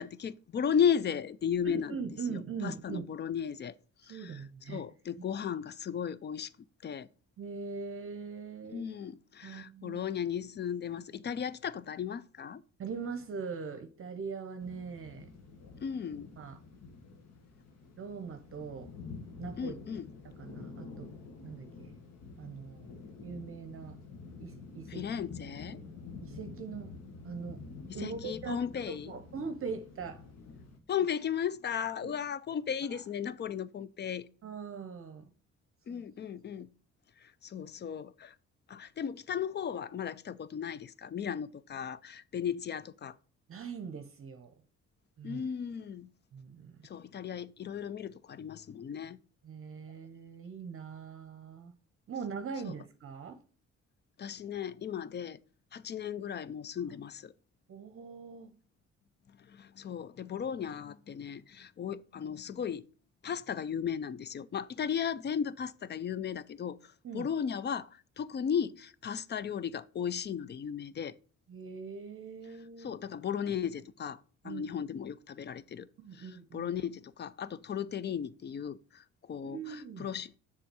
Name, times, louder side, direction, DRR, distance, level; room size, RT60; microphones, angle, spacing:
voice 1, 0.0-2.0 2.3-3.8 4.0-4.4 4.7-6.5 6.8-7.1 8.7-12.6 15.8-16.3 19.6-20.1 24.9-25.8 27.9-29.1 30.9-34.3 35.9-36.7 37.2-38.3 38.7-43.2 45.2-46.1 46.8-49.2 52.6-52.7 54.2-55.4 55.7-57.3 59.4-62.8 63.2-71.1 72.8-74.2 74.4-75.9 76.1-80.3, left 8 dB, 35° left, 0.4 m, -35 dB
voice 2, 1.6-3.0 4.1-4.8 7.4-8.9 9.4-10.0 12.8-15.3 16.4-16.6 18.0-18.9 19.4-19.8 20.2-21.1 21.4-21.9 22.4-22.9 23.2-24.0 24.4-25.0 26.2-26.9 27.2-27.6 27.9-30.3 32.0-32.1 32.8-33.0 34.4-35.3 35.9-36.0 43.5-44.5 45.2-45.4 46.3-46.8 49.4-51.7 52.1-53.4 57.7-58.5 67.0-67.3 71.5-72.9 74.4-74.6 76.0-76.7 79.4-80.1, right 5 dB, 45° right, 0.8 m, -41 dB
sound 1, 14.6-30.8, left 4 dB, 60° left, 1.4 m, -48 dB
6.9 x 3.7 x 6.0 m
cardioid pair, 90°, 30 cm